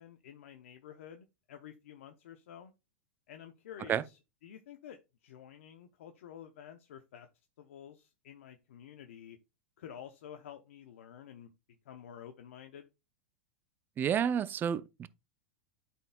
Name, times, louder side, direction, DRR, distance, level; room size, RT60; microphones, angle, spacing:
voice 1, 0.0-2.7 3.3-7.3 7.6-9.4 9.8-12.9, left 9 dB, 75° left, 0.7 m, -50 dB
voice 2, 14.0-15.1, right 8 dB, 30° right, 0.5 m, -30 dB
12.0 x 4.4 x 2.2 m
hypercardioid pair, 110°, 7 cm